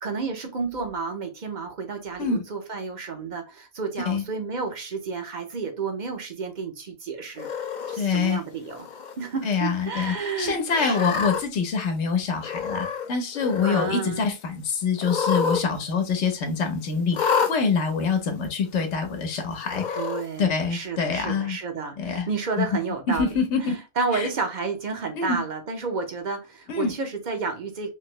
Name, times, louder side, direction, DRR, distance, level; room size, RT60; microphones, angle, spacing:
voice 1, 0.0-7.5 7.9-8.9 9.2-11.1 13.6-14.2 20.0-27.9, right 4 dB, 45° right, 0.7 m, -31 dB
Cat, 7.4-8.0 8.7-9.1 9.5-9.6 10.7-11.4 12.4-13.1 13.3-13.9 15.0-15.6 15.9-16.0 17.1-17.5 18.4-18.5 19.7-20.2, left 6 dB, 55° left, 0.6 m, -27 dB
voice 2, 8.0-8.4 9.4-20.0 20.4-21.6 22.0-22.3 22.6-22.7 23.1-23.8 24.1-24.3 25.2-25.3 26.7-26.9, left 5 dB, 75° left, 1.1 m, -25 dB
3.3 x 2.9 x 3.0 m
omnidirectional pair, 1.2 m